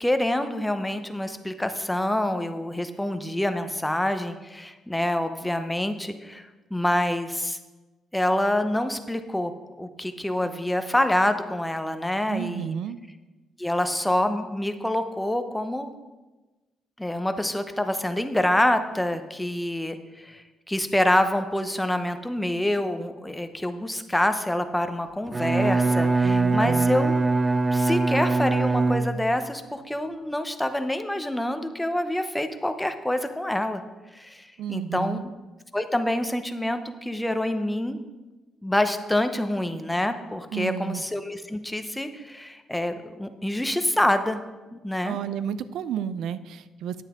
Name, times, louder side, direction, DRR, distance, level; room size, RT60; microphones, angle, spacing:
voice 1, 0.0-7.6 8.1-9.5 9.8-12.7 13.6-15.9 17.0-27.1 27.7-33.8 34.1-35.2 35.7-38.0 38.6-44.4 44.7-45.2, left 1 dB, 5° left, 8 dB, 0.8 m, -26 dB
voice 2, 12.3-13.0 26.2-26.9 34.6-35.2 40.5-41.0 45.1-47.0, right 8 dB, 80° right, 15 dB, 0.4 m, -31 dB
Bowed string instrument, 25.3-29.5, right 3 dB, 25° right, 0.6 m, -23 dB
10.0 x 8.8 x 3.7 m, 1.2 s
cardioid pair, 90°, 0 cm